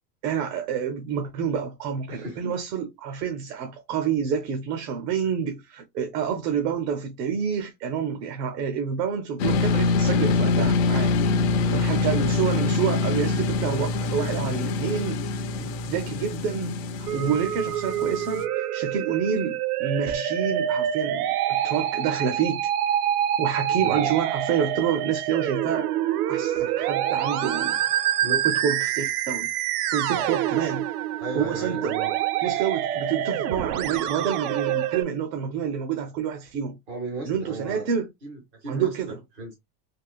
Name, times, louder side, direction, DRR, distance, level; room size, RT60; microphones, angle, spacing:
voice 1, 0.2-11.1 11.7-15.2 15.6-22.7 23.4-25.9 26.3-27.8 28.4-29.5 29.9-30.8 31.4-32.0 32.4-36.7 37.2-38.1 38.7-39.2, right 7 dB, 80° right, 0.9 m, -28 dB
voice 2, 2.1-2.5 11.6-11.9 23.8-24.1 28.2-28.5 30.1-30.3 31.2-32.2 36.9-37.9 38.2-38.9 39.4-39.5, right 2 dB, 15° right, 0.3 m, -35 dB
sound 1, 9.4-18.4, left 4 dB, 45° left, 0.5 m, -25 dB
Musical instrument, 17.1-35.0, right 11 dB, 65° right, 0.6 m, -26 dB
3.6 x 2.5 x 2.2 m
supercardioid pair, 175°, 49 cm